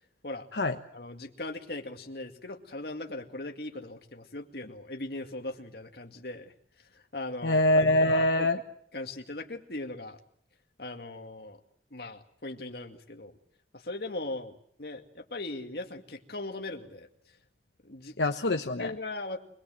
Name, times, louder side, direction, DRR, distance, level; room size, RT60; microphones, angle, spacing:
voice 1, 0.9-6.5 6.9-7.6 8.4-8.6 8.9-10.2 10.8-11.6 11.9-13.3 13.7-17.1 17.8-18.2 18.8-19.4, left 2 dB, 60° left, 4 dB, 2.2 m, -39 dB
voice 2, 7.4-8.6 18.2-18.9, left 1 dB, 80° left, 5 dB, 1.1 m, -24 dB
25.0 x 21.0 x 7.7 m, 0.67 s
head